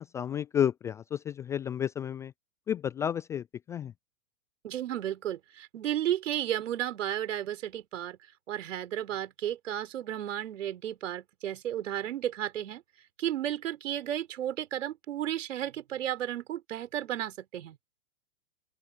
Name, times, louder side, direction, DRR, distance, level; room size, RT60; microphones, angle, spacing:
voice 1, 0.0-2.3 2.7-3.9, left 9 dB, 10° left, 0.3 m, -31 dB
voice 2, 4.6-8.2 8.5-12.8 13.2-17.8, right 11 dB, 60° right, 4.6 m, -33 dB
open air
figure-of-eight pair, 110°, 41 cm